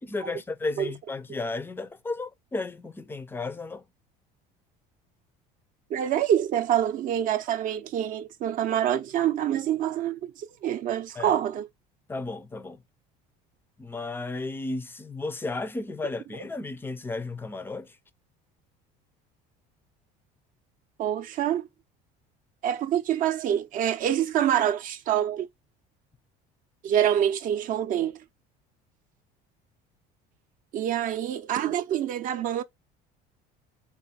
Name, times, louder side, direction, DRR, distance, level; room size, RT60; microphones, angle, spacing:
voice 1, 0.0-3.8 11.2-11.4 12.1-12.8 13.8-18.0, left 3 dB, 10° left, 0.4 m, -34 dB
voice 2, 5.9-11.7 21.0-21.7 22.6-25.5 26.8-28.2 30.7-32.6, right 10 dB, 50° right, 0.5 m, -26 dB
4.1 x 2.4 x 4.1 m
cardioid pair, 125°, 18 cm